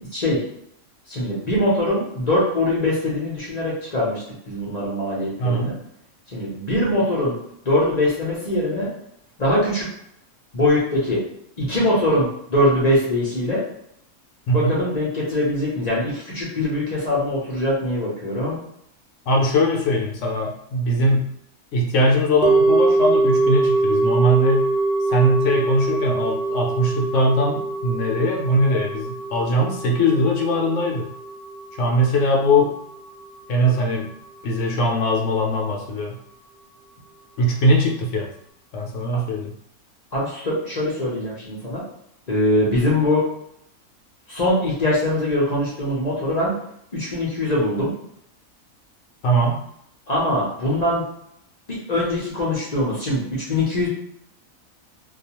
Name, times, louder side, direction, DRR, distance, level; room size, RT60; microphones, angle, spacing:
voice 1, 1.1-5.7 6.3-7.3 7.6-8.9 9.4-9.9 10.5-11.2 11.6-13.6 14.5-18.6 40.1-41.8 42.3-43.2 44.3-46.5 46.9-47.9 50.1-51.0 51.7-53.9, left 1 dB, 45° left, -6 dB, 0.6 m, -22 dB
voice 2, 14.5-14.8 19.3-21.3 21.7-24.7 25.1-31.1 31.8-32.7 33.5-34.1 34.4-36.1 37.4-38.3 38.7-39.5 49.2-49.6, equal, 70° left, 0 dB, 0.8 m, -20 dB
sound 1, 22.4-32.7 33.0-33.1, right 3 dB, 60° right, 0.6 m, -23 dB
2.3 x 2.3 x 2.8 m, 0.75 s
omnidirectional pair, 1.5 m